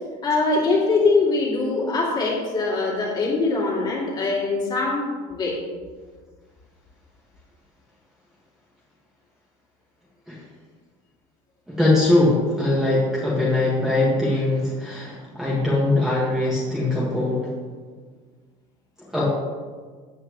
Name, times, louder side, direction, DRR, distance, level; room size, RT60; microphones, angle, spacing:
voice 1, 0.2-5.6, left 3 dB, 25° left, -3 dB, 2.5 m, -22 dB
voice 2, 11.7-17.5 19.1-19.2, left 2 dB, 5° right, -6 dB, 1.7 m, -21 dB
14.5 x 8.6 x 3.1 m, 1.5 s
cardioid pair, 180°, 17 cm